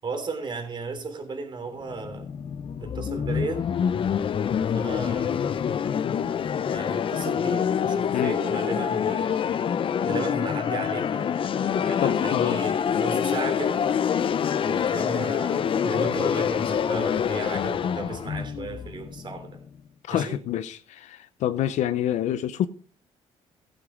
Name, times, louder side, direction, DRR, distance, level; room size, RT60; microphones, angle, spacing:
voice 1, 0.0-2.3 2.8-3.6 4.7-5.5 6.7-9.5 10.0-11.3 11.7-13.9 14.6-19.6 20.1-20.4, right 3 dB, 40° right, 3.3 m, -35 dB
sound 1, 1.9-19.7, left 8 dB, 45° left, 0.6 m, -26 dB
voice 2, 12.0-12.6 20.1-22.7, left 11 dB, 75° left, 0.8 m, -27 dB
16.0 x 8.0 x 3.7 m
cardioid pair, 105°, 12 cm